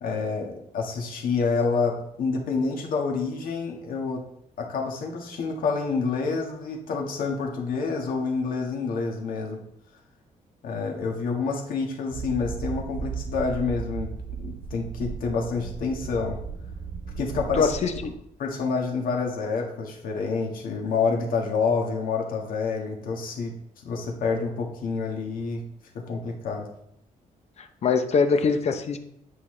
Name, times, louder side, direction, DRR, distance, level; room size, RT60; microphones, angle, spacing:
voice 1, 0.0-4.2 4.6-9.6 10.6-14.1 14.4-16.4 17.2-17.7 18.4-23.5 23.8-25.6 26.1-26.7, left 4 dB, 80° left, 1 dB, 1.6 m, -28 dB
sound 1, 12.1-18.1, right 6 dB, 60° right, 1.9 m, -35 dB
voice 2, 17.5-18.1 27.6-29.0, left 5 dB, 50° left, 8 dB, 0.8 m, -23 dB
9.8 x 5.5 x 3.2 m, 0.75 s
cardioid pair, 135°, 14 cm